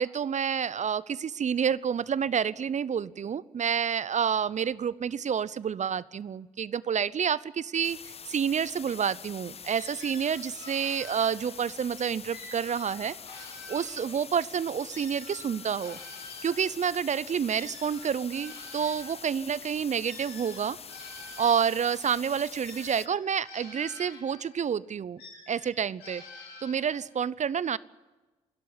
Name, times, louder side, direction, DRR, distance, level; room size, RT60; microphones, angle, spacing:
voice 1, 0.0-8.0 8.3-13.2 13.7-16.0 16.4-20.8 21.4-25.2 25.5-26.2 26.6-27.8, right 7 dB, 40° right, 21 dB, 0.7 m, -29 dB
sound 1, 7.8-23.1, left 6 dB, 35° left, 0.7 m, -45 dB
sound 2, 9.7-11.8 12.3-14.4 14.9-19.2 20.0-22.0 22.6-24.6 25.2-27.2, left 3 dB, 70° left, 7.1 m, -48 dB
27.0 x 13.5 x 9.7 m, 1.2 s
hypercardioid pair, 45°, 18 cm